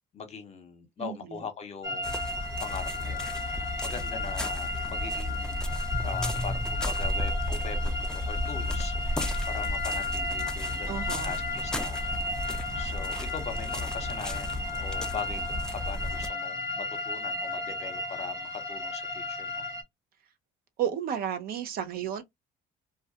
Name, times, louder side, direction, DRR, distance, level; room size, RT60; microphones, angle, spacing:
voice 1, 0.1-5.7 6.0-19.7, left 6 dB, 40° left, 0.8 m, -41 dB
voice 2, 1.0-1.4 10.9-11.3 20.8-22.2, right 9 dB, 60° right, 0.5 m, -32 dB
sound 1, 1.8-19.8, left 2 dB, 15° right, 0.9 m, -34 dB
sound 2, 2.0-16.3, left 1 dB, 5° left, 0.4 m, -33 dB
2.3 x 2.1 x 2.6 m
cardioid pair, 110°, 17 cm